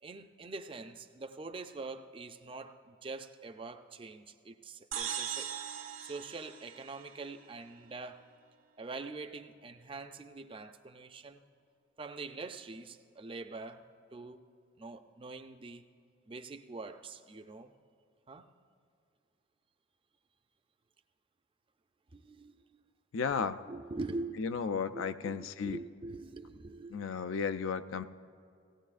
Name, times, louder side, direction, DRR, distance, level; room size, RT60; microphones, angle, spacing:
voice 1, 0.0-5.6 6.0-8.2 8.8-11.4 12.0-14.4 14.8-15.8 16.3-17.7 18.3-18.5 22.1-22.8 23.7-24.6 24.9-27.1, right 3 dB, 25° right, 8 dB, 0.4 m, -44 dB
sound 1, 4.9-7.5, right 8 dB, 75° right, 0.8 m, -40 dB
voice 2, 23.1-23.6 24.4-25.8 26.9-28.0, left 6 dB, 75° left, 13 dB, 0.4 m, -34 dB
18.0 x 16.0 x 2.5 m, 2.3 s
head